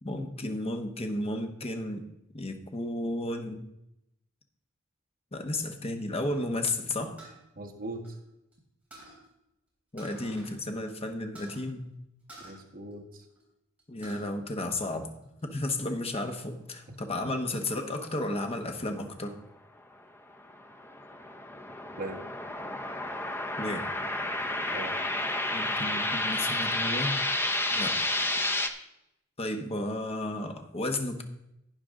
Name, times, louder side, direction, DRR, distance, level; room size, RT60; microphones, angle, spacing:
voice 1, 0.0-2.0 2.3-3.6 5.3-7.2 9.9-11.9 13.9-15.1 15.4-19.3 23.6-23.9 25.5-27.2 27.7-28.0 29.4-31.2, left 1 dB, 30° left, 5 dB, 1.1 m, -33 dB
sound 1, 7.2-8.5 8.9-9.2 10.0-10.6 10.9-11.0 11.3-11.6 12.3-13.4 13.8-14.3 14.7-15.5, right 1 dB, 5° right, 4.0 m, -50 dB
voice 2, 7.5-8.1 12.4-13.2 17.2-17.4 22.0-22.2 24.7-24.9, right 1 dB, 45° right, 0 dB, 1.5 m, -39 dB
sound 2, 20.3-28.7, left 1 dB, 10° left, 0.6 m, -31 dB
11.5 x 9.3 x 3.7 m, 0.85 s
head